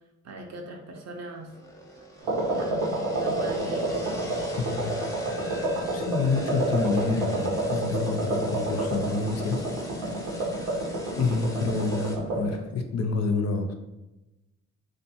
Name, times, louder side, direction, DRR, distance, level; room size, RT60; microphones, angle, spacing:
voice 1, 0.2-1.5 2.5-2.9 3.2-3.9, right 3 dB, 55° right, 2 dB, 0.6 m, -40 dB
sound 1, 1.4-12.2, equal, 10° left, 0.7 m, -42 dB
sound 2, 2.2-12.6, right 1 dB, 85° right, 0.9 m, -29 dB
voice 2, 4.6-5.1 5.9-9.6 11.2-13.7, left 4 dB, 50° left, 6 dB, 0.5 m, -28 dB
2.6 x 2.4 x 2.7 m, 0.99 s
supercardioid pair, 55°, 33 cm